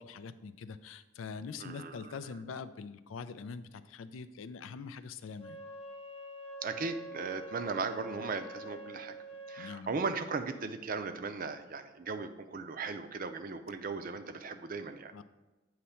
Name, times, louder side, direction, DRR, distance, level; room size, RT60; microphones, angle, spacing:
voice 1, 0.0-5.6 9.6-9.9 15.1-15.2, left 5 dB, 85° left, 13 dB, 0.4 m, -44 dB
voice 2, 1.6-2.2 6.6-9.2 9.5-15.1, right 4 dB, 45° right, 8 dB, 0.5 m, -37 dB
Wind instrument woodwind instrument, 5.3-9.8, equal, 30° left, 0.6 m, -46 dB
8.1 x 3.1 x 5.6 m, 1.1 s
head